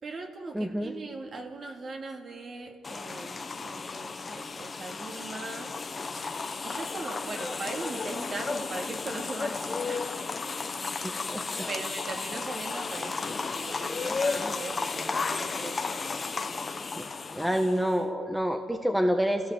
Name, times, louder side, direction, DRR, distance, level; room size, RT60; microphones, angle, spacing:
voice 1, 0.0-5.7 6.6-10.1 10.4-10.6 11.1-11.2 11.7-16.1, right 3 dB, 40° right, 3 dB, 3.0 m, -40 dB
voice 2, 0.5-0.9 11.0-11.7 17.3-19.5, equal, 5° right, 5 dB, 1.3 m, -28 dB
sound 1, 2.8-18.0, left 4 dB, 30° left, 1.2 m, -33 dB
28.0 x 16.5 x 8.0 m, 2.4 s
cardioid pair, 90°, 0 cm